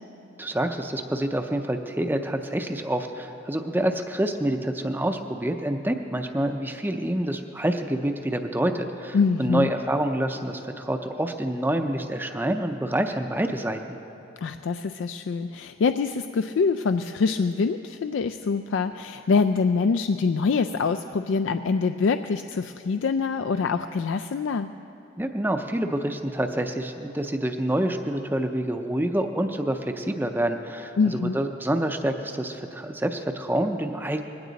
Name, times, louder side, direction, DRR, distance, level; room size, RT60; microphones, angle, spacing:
voice 1, 0.4-14.0 25.2-34.2, right 1 dB, 10° right, 6 dB, 0.5 m, -27 dB
voice 2, 9.1-9.7 14.4-24.7 31.0-31.4, left 4 dB, 75° left, 8 dB, 0.4 m, -25 dB
20.0 x 15.5 x 4.0 m, 2.9 s
head